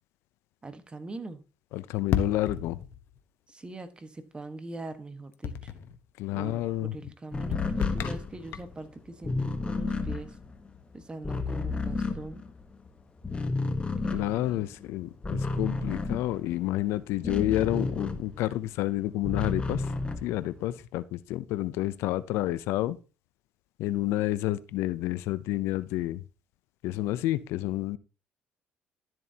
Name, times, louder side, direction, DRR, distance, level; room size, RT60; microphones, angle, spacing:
voice 1, 0.6-1.4 3.5-5.7 6.3-10.3 10.9-12.4 14.0-14.7, right 2 dB, 20° right, 10 dB, 1.4 m, -42 dB
voice 2, 1.7-2.8 6.2-6.9 14.1-19.9 20.2-23.0 23.8-26.2 26.8-28.0, left 15 dB, 80° left, 17 dB, 0.5 m, -29 dB
sound 1, 2.1-3.2 5.4-6.0 7.5-8.8, left 8 dB, 65° left, 1.0 m, -32 dB
sound 2, 7.3-12.9 13.2-18.6 19.0-20.8, left 3 dB, 25° left, 1.2 m, -32 dB
12.5 x 7.6 x 2.8 m, 0.33 s
supercardioid pair, 80°, 4 cm